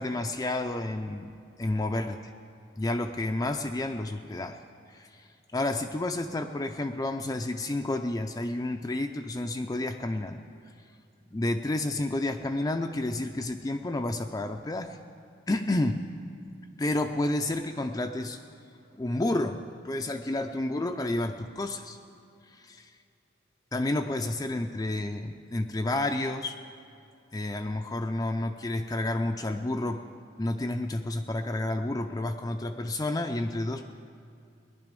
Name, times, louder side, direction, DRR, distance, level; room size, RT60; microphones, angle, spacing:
voice 1, 0.0-2.2 2.8-4.6 4.9-10.4 11.3-15.0 15.5-16.0 16.8-18.4 18.9-19.6 19.8-22.0 22.5-22.9 23.7-26.6 27.3-30.0 30.4-33.9, left 2 dB, 20° left, 4 dB, 0.4 m, -30 dB
18.0 x 11.0 x 5.2 m, 2.5 s
head